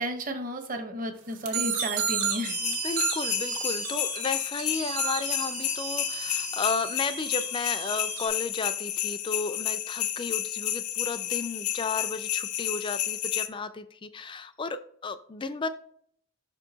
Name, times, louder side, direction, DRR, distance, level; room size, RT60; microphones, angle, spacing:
voice 1, 0.0-2.6, equal, 40° right, 6 dB, 0.9 m, -33 dB
sound 1, 1.4-8.3, right 7 dB, 85° right, 1.1 m, -33 dB
sound 2, 2.4-13.5, left 12 dB, 80° left, 0.6 m, -31 dB
voice 2, 2.6-15.7, left 4 dB, 20° left, 11 dB, 0.3 m, -33 dB
5.7 x 4.5 x 4.0 m, 0.63 s
head